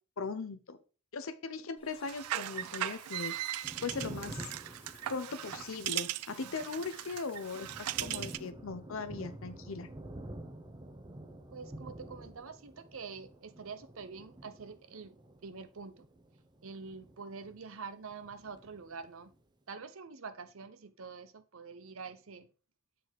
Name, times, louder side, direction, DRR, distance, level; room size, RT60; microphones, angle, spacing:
voice 1, 0.2-0.8 1.1-3.4 3.8-4.5 5.1-9.9, left 4 dB, 65° left, 0.7 m, -39 dB
Water / Bathtub (filling or washing), 1.8-8.3, left 5 dB, 25° left, 1.3 m, -59 dB
sound 1, 2.1-8.5, right 14 dB, 90° right, 0.3 m, -38 dB
Thunder, 3.5-17.9 18.1-19.4, right 1 dB, 20° right, 0.7 m, -49 dB
voice 2, 11.5-15.2 15.4-16.1 16.6-19.3 19.7-22.5, right 5 dB, 65° right, 0.7 m, -46 dB
6.8 x 4.0 x 4.7 m
head